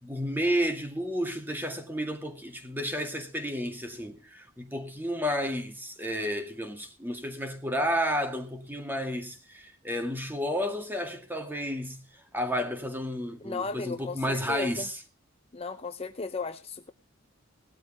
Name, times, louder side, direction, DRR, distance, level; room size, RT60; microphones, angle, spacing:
voice 1, 0.0-12.1 12.3-14.9, equal, 10° right, 2.1 m, -31 dB
voice 2, 13.4-14.9 15.5-16.9, left 4 dB, 30° left, 0.6 m, -35 dB
19.0 x 12.5 x 3.0 m
head